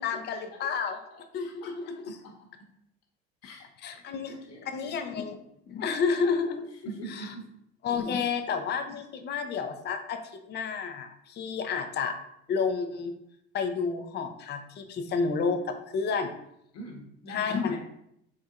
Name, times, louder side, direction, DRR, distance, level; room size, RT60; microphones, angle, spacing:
voice 1, 0.0-1.0 1.3-2.2 3.8-4.4 4.7-5.4 5.7-6.7 7.1-7.3 7.8-10.2 10.5-12.1 12.5-13.1 13.5-16.4 17.3-17.8, left 5 dB, 35° left, 7 dB, 0.5 m, -30 dB
voice 2, 0.9-2.7 3.4-5.0 6.8-7.5 16.7-17.8, right 1 dB, 55° left, 1 dB, 1.1 m, -45 dB
4.2 x 3.4 x 2.4 m, 0.76 s
supercardioid pair, 80°, 31 cm